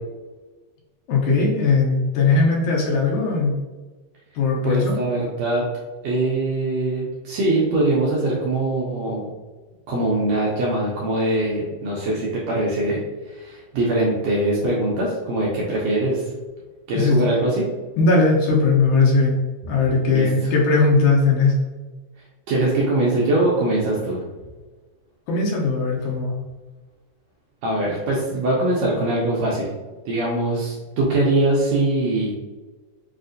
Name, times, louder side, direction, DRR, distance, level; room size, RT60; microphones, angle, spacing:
voice 1, 1.1-3.5 4.4-5.0 16.9-17.2 18.0-19.4 19.7-21.5 25.3-26.4, left 3 dB, 75° left, -2 dB, 2.0 m, -19 dB
voice 2, 4.6-5.6 6.0-9.3 9.9-13.0 13.2-16.3 16.9-17.6 20.1-20.5 22.5-24.2 27.6-29.7 30.0-32.4, right 2 dB, 80° right, -4 dB, 1.6 m, -22 dB
5.1 x 2.4 x 2.5 m, 1.3 s
omnidirectional pair, 3.6 m